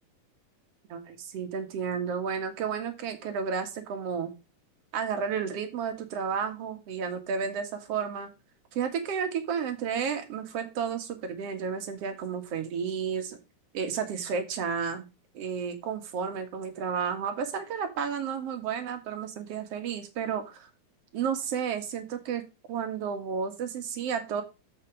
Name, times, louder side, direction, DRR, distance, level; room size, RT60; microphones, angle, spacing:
voice 1, 0.9-4.3 4.9-8.3 8.7-13.4 13.7-15.1 15.3-20.7 21.1-22.4 22.7-24.4, right 6 dB, 50° right, 7 dB, 2.5 m, -32 dB
8.3 x 5.9 x 5.0 m, 0.27 s
omnidirectional pair, 3.8 m